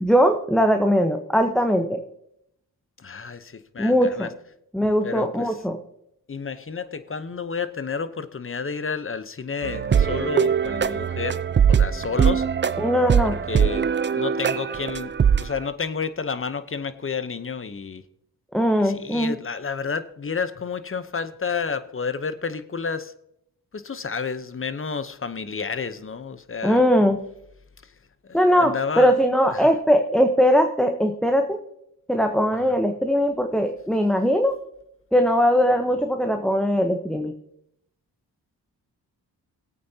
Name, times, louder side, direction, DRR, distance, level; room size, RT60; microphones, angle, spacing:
voice 1, 0.0-2.0 3.8-4.3 4.7-5.8 12.8-13.4 18.5-19.3 26.6-27.2 28.3-31.6 32.1-34.5 35.1-37.3, equal, ahead, 6 dB, 1.0 m, -20 dB
voice 2, 3.0-4.3 5.0-5.6 6.3-11.4 11.7-12.4 13.2-13.9 14.1-15.1 15.4-18.0 18.8-23.1 23.7-26.8 28.3-29.1 29.5-29.7 32.7-32.8, left 5 dB, 30° left, 13 dB, 0.9 m, -30 dB
Chill Background Music, 9.6-15.6, right 7 dB, 30° right, 0.4 m, -22 dB
18.0 x 8.5 x 2.8 m, 0.77 s
cardioid pair, 55°, 39 cm